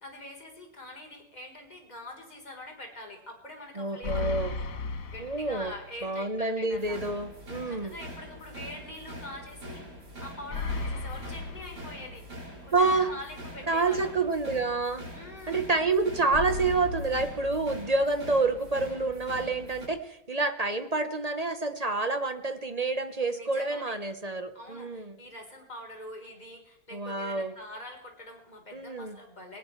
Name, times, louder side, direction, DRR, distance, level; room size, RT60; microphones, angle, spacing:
voice 1, 0.0-4.7 5.0-7.1 7.5-9.9 10.2-12.2 12.6-14.1 15.1-15.6 23.3-24.0 24.5-29.6, left 1 dB, 25° left, 1 dB, 4.0 m, -44 dB
voice 2, 3.8-4.5 5.2-5.7 6.0-7.9 12.7-13.1 13.7-15.0 15.5-25.2 26.9-27.5 28.7-29.2, right 3 dB, 30° right, 9 dB, 0.9 m, -28 dB
sound 1, 4.0-6.1 6.4-6.5 10.5-12.5 16.3-18.3, left 3 dB, 55° left, 1.6 m, -36 dB
sound 2, 6.7-19.9, equal, 75° right, 5.5 m, -44 dB
19.5 x 19.5 x 3.2 m, 0.84 s
omnidirectional pair, 1.8 m